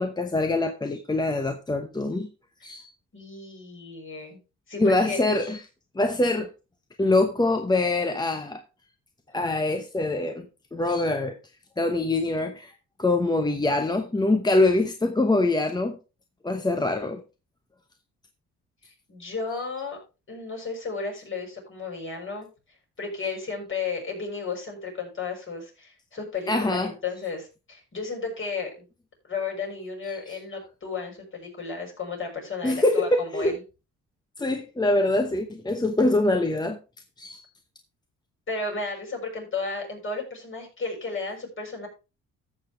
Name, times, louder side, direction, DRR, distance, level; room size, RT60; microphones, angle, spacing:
voice 1, 0.0-2.3 2.6-2.9 4.8-5.6 5.9-6.5 7.0-8.6 9.3-10.5 10.7-11.4 11.8-12.7 13.0-16.0 16.4-17.2 26.5-26.9 32.6-33.6 34.4-36.8 37.2-37.4, left 2 dB, 15° left, 0.9 m, -24 dB
voice 2, 3.1-4.4 4.7-5.2 19.1-20.0 20.3-22.5 23.0-28.8 29.2-33.6 38.5-41.9, left 4 dB, 40° left, 6.1 m, -33 dB
14.0 x 6.9 x 3.4 m
cardioid pair, 90°, 30 cm